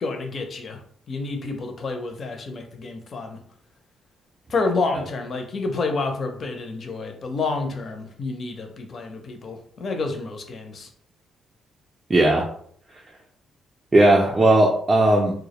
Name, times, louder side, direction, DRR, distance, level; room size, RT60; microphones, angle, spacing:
voice 1, 0.0-0.8 1.1-3.4 4.5-10.9, left 3 dB, 45° left, 4 dB, 0.5 m, -29 dB
voice 2, 12.1-12.5 13.9-15.5, right 1 dB, 25° right, -1 dB, 0.4 m, -17 dB
2.2 x 2.0 x 2.9 m, 0.62 s
cardioid pair, 90°, 0 cm